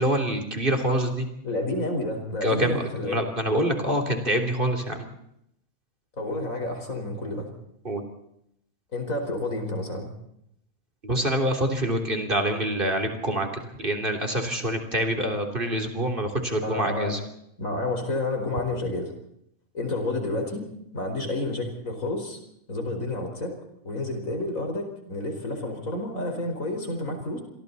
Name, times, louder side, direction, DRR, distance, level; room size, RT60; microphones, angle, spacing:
voice 1, 0.0-1.3 2.4-5.1 7.9-8.0 11.0-17.2, right 1 dB, 40° right, 4 dB, 3.6 m, -26 dB
voice 2, 1.4-3.2 6.2-7.5 8.9-10.1 16.6-17.2 17.6-19.1 19.7-20.6 20.9-22.4 22.7-23.6 23.8-27.4, left 2 dB, 75° left, 4 dB, 5.2 m, -30 dB
29.0 x 23.0 x 4.2 m, 0.77 s
omnidirectional pair, 1.4 m